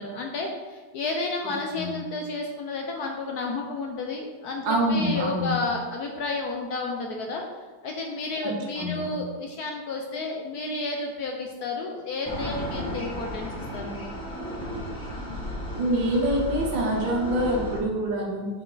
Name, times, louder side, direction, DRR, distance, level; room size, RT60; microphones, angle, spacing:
voice 1, 0.0-7.4 7.8-14.1, left 3 dB, 65° left, 1 dB, 1.0 m, -31 dB
voice 2, 4.7-5.6 8.4-8.5 8.8-9.2 15.7-18.5, right 1 dB, 70° right, -1 dB, 1.8 m, -25 dB
sound 1, 12.3-17.8, equal, 5° left, 1.1 m, -34 dB
6.3 x 4.4 x 3.9 m, 1.4 s
omnidirectional pair, 2.1 m